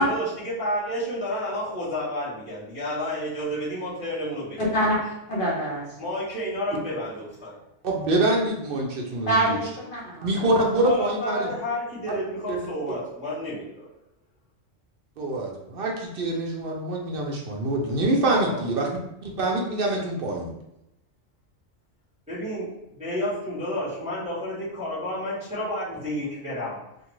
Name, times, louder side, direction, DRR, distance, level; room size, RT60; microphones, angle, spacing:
voice 1, 0.0-4.8 6.0-7.6 10.8-13.9 18.3-18.6 22.3-22.7 23.0-26.8, equal, 5° right, -12 dB, 1.0 m, -30 dB
voice 2, 4.6-5.0 5.3-5.8 9.3-10.3, right 1 dB, 55° left, -6 dB, 0.8 m, -25 dB
voice 3, 7.8-9.6 10.2-11.5 12.5-12.6 15.2-18.9 19.4-20.5, right 2 dB, 60° right, -1 dB, 0.7 m, -25 dB
2.5 x 2.4 x 3.0 m, 0.83 s
omnidirectional pair, 1.2 m